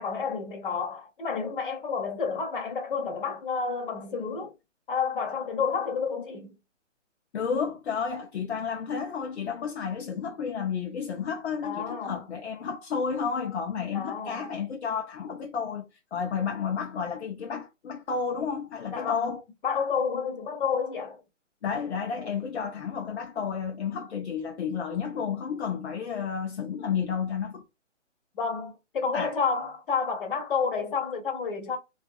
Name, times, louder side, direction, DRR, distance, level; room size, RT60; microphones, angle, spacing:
voice 1, 0.0-4.5 4.9-6.6 11.6-12.3 13.9-14.5 18.9-19.3 19.6-21.2 28.3-31.8, left 5 dB, 45° left, 1.0 m, -30 dB
voice 2, 7.3-15.8 16.1-19.4 21.6-27.6 29.1-29.4, left 6 dB, 60° left, 0.6 m, -31 dB
2.6 x 2.3 x 2.5 m
hypercardioid pair, 150°, 37 cm